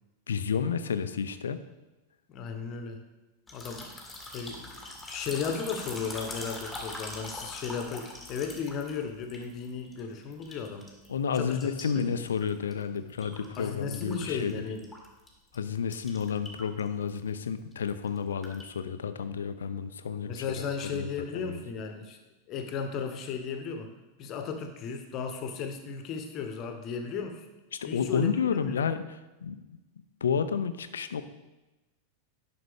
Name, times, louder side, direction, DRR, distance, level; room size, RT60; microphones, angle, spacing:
voice 1, 0.3-1.6 11.1-14.6 15.5-20.4 20.9-21.1 21.3-21.6 27.8-29.0 29.4-29.5 30.2-31.2, left 7 dB, 65° left, 11 dB, 0.5 m, -30 dB
voice 2, 2.3-3.0 3.5-3.9 4.3-4.8 5.1-10.9 11.3-11.6 11.9-12.1 13.6-14.9 20.2-22.2 22.5-23.9 24.2-27.4 27.8-28.8, left 5 dB, 35° left, 6 dB, 1.1 m, -35 dB
sound 1, 3.5-10.0 10.3-11.1 11.4-13.7 13.9-15.3 15.5-15.6 15.9-16.8 17.1-17.3 17.7-18.7, left 2 dB, 5° left, 1.7 m, -42 dB
11.0 x 5.9 x 3.5 m, 1.0 s
figure-of-eight pair, 90°, 0 cm